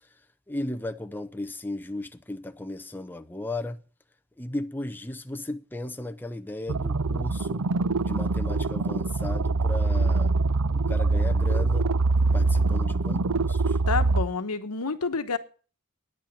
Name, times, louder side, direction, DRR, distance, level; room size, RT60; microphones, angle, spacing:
voice 1, 0.5-3.8 4.4-7.7 8.0-10.3 10.7-11.9 12.3-13.8, left 1 dB, 10° left, 0.6 m, -35 dB
sound 1, 6.7-14.2, right 3 dB, 70° right, 0.6 m, -24 dB
voice 2, 13.9-15.4, left 4 dB, 85° left, 1.1 m, -28 dB
10.0 x 8.4 x 8.6 m
head